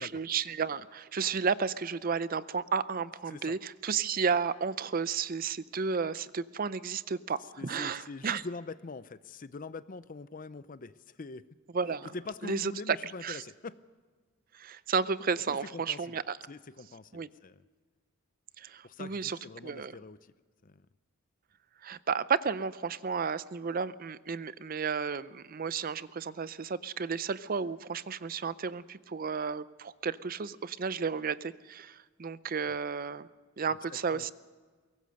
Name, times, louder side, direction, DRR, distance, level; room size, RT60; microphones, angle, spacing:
voice 1, 0.0-8.4 11.7-12.1 12.4-13.0 13.2-13.4 14.5-16.4 17.1-17.3 18.6-19.9 21.8-33.3 33.6-34.3, right 5 dB, 40° right, 16 dB, 0.5 m, -32 dB
voice 2, 7.6-11.5 12.1-13.8 15.5-16.2 16.5-17.6 18.8-20.3 20.6-20.9 32.7-32.8 33.7-34.3, left 3 dB, 40° left, 15 dB, 0.6 m, -44 dB
22.5 x 18.0 x 6.5 m, 1.4 s
head